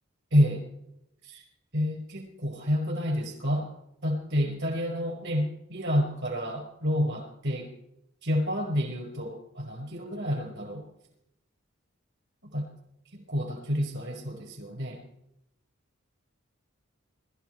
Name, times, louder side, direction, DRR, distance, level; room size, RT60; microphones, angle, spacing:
voice 1, 0.3-0.6 1.2-1.4 1.7-3.7 4.0-7.7 8.2-10.8 12.5-12.6 13.1-15.0, equal, 60° right, 3 dB, 5.1 m, -29 dB
21.5 x 13.5 x 4.6 m, 0.82 s
head